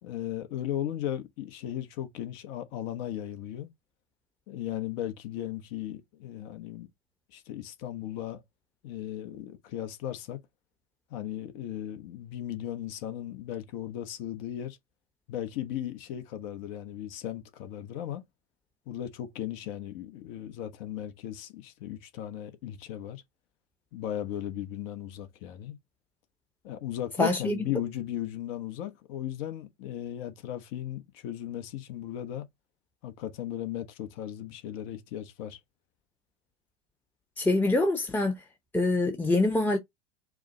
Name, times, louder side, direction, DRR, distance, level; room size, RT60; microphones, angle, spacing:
voice 1, 0.0-3.7 4.5-6.9 7.3-8.4 8.8-10.4 11.1-14.8 15.3-18.2 18.9-23.2 23.9-25.8 26.6-32.5 33.0-35.6, left 11 dB, 55° left, 1.0 m, -36 dB
voice 2, 27.2-27.6 37.4-38.3 38.7-39.8, left 2 dB, 5° left, 0.8 m, -25 dB
4.9 x 2.1 x 3.8 m
hypercardioid pair, 85°, 34 cm